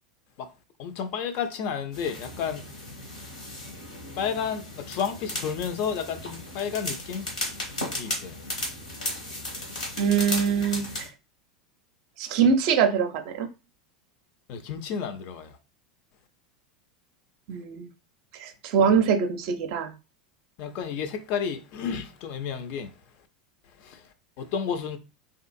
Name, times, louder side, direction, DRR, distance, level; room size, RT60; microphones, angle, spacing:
voice 1, 0.8-2.7 4.2-7.3 8.0-8.4 14.5-15.6 20.6-22.9 23.8-25.0, left 7 dB, 50° left, 0.4 m, -31 dB
sound 1, 1.9-11.1, left 1 dB, 90° left, 1.2 m, -35 dB
voice 2, 10.0-11.1 12.2-13.5 17.5-17.9 18.4-19.9, right 6 dB, 55° right, 0.4 m, -23 dB
2.7 x 2.4 x 2.5 m
figure-of-eight pair, 85°, 4 cm